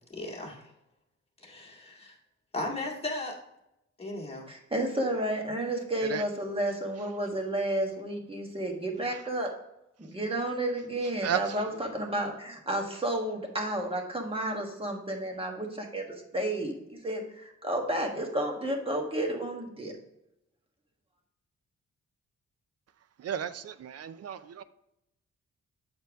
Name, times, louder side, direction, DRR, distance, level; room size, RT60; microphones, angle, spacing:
voice 1, 0.1-0.7 1.4-2.2 2.5-3.4 4.0-4.5, left 2 dB, 20° left, 1.7 m, -36 dB
voice 2, 4.5-9.5 10.0-19.9, right 1 dB, 20° right, 1.4 m, -31 dB
voice 3, 23.2-24.6, right 9 dB, 55° right, 0.5 m, -33 dB
7.8 x 4.4 x 3.4 m
wide cardioid pair, 130°, 30 cm